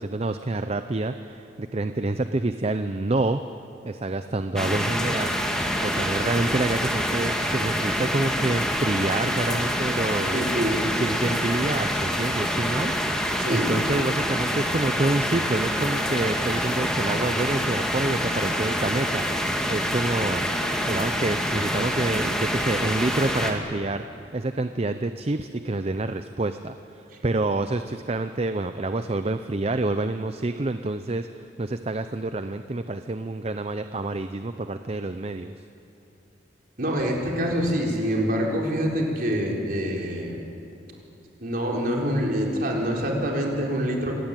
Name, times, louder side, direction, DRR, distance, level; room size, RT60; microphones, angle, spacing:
voice 1, 0.0-3.4 3.8-5.4 5.8-10.3 10.9-20.5 20.9-24.0 24.3-35.6, right 2 dB, 35° right, 9 dB, 0.6 m, -28 dB
sound 1, 4.6-23.5, equal, 5° left, 2.0 m, -26 dB
voice 2, 10.3-10.8 13.4-13.7 36.8-40.4 41.4-44.2, equal, 50° right, -1 dB, 4.2 m, -25 dB
25.5 x 17.5 x 9.1 m, 2.8 s
head